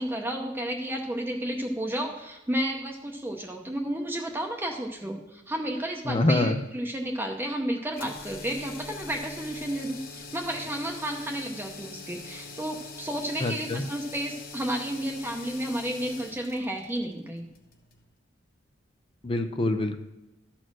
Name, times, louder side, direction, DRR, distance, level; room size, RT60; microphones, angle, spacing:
voice 1, 0.0-17.5, right 1 dB, 10° right, 1 dB, 0.7 m, -32 dB
voice 2, 6.1-6.6 13.4-13.8 19.2-20.0, left 2 dB, 30° left, 7 dB, 0.5 m, -25 dB
sound 1, 7.9-18.0, left 3 dB, 50° left, 1.2 m, -43 dB
12.5 x 4.4 x 6.1 m, 0.95 s
head